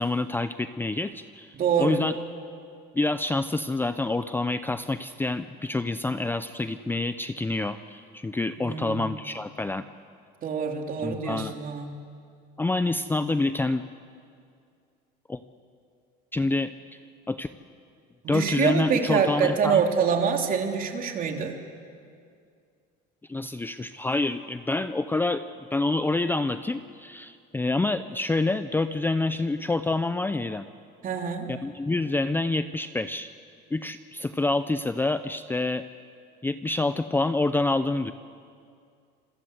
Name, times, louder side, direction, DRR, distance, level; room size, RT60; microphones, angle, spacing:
voice 1, 0.0-2.1 2.9-9.8 11.0-11.5 12.6-13.8 15.3-15.4 16.3-16.7 17.3-17.5 18.3-19.8 23.3-25.4 25.7-30.6 31.5-33.3 33.7-35.8 36.4-38.1, left 2 dB, 10° left, 11 dB, 0.6 m, -27 dB
voice 2, 1.5-2.1 8.6-9.2 10.4-12.0 18.2-21.6 31.0-31.5, right 6 dB, 40° right, 3 dB, 3.2 m, -26 dB
27.0 x 22.5 x 8.1 m, 2.3 s
cardioid pair, 125°, 21 cm